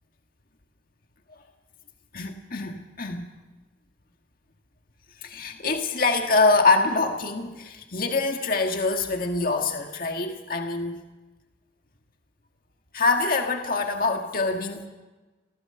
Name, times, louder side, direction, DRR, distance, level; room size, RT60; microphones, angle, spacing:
voice 1, 2.1-3.3 5.2-11.0 12.9-14.9, left 3 dB, 55° left, 4 dB, 1.7 m, -24 dB
29.0 x 16.0 x 6.8 m, 1.2 s
head